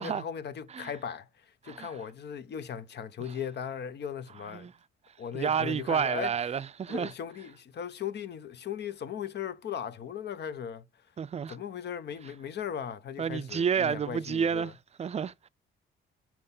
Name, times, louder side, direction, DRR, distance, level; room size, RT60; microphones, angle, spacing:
voice 1, 0.0-4.7 5.2-6.3 6.9-10.8 11.5-14.7, left 8 dB, 60° left, 0.9 m, -38 dB
voice 2, 5.3-7.1 11.2-11.6 13.2-14.7 15.0-15.5, right 7 dB, 35° right, 0.5 m, -30 dB
7.7 x 4.4 x 5.5 m
cardioid pair, 90°, 20 cm